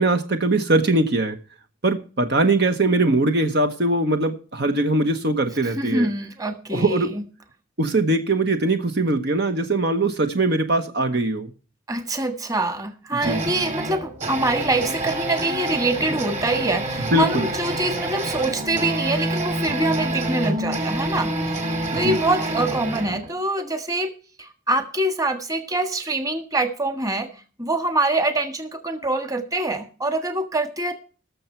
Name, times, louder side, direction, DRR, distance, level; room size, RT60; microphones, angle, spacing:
voice 1, 0.0-1.4 1.8-6.1 6.7-7.1 7.8-11.5 13.1-13.4 17.1-17.5 21.9-22.2, right 2 dB, 55° right, 7 dB, 1.0 m, -21 dB
voice 2, 5.8-7.2 11.9-24.1 24.4-27.3 27.6-30.9, right 2 dB, 15° right, 7 dB, 1.5 m, -25 dB
sound 1, 13.2-23.3, right 1 dB, 35° right, 2.7 m, -27 dB
18.5 x 6.9 x 4.4 m, 0.38 s
head